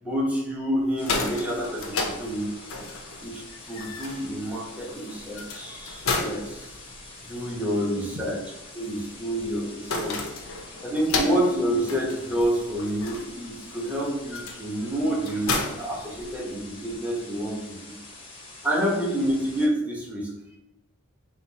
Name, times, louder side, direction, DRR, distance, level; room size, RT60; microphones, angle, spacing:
voice 1, 0.0-2.5 3.2-6.7 7.2-8.4 8.7-10.2 10.8-17.9 18.6-20.3, right 1 dB, 5° right, -4 dB, 1.0 m, -28 dB
sound 1, 0.8-16.7, left 3 dB, 65° left, 0.7 m, -34 dB
sound 2, 1.0-19.7, left 2 dB, 25° left, 0.8 m, -45 dB
voice 2, 7.4-8.3 10.4-10.7 18.1-18.7 20.5-20.6, right 2 dB, 45° right, -1 dB, 0.6 m, -47 dB
4.2 x 2.5 x 4.0 m, 0.92 s
head